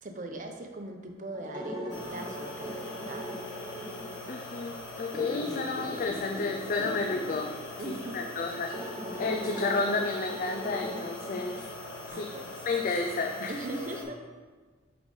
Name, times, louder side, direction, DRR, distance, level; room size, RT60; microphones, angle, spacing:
voice 1, 0.0-3.3 7.8-8.2 12.1-12.5 13.5-14.2, right 2 dB, 45° right, 4 dB, 0.7 m, -40 dB
sound 1, 1.3-12.1, equal, 25° right, 1.5 m, -40 dB
sound 2, 1.9-14.0, left 2 dB, 90° left, 1.4 m, -42 dB
voice 2, 4.3-7.5 7.9-8.8 9.2-11.6 12.1-12.3 12.6-13.6, left 3 dB, 45° left, 2 dB, 0.4 m, -31 dB
7.3 x 4.7 x 3.9 m, 1.4 s
head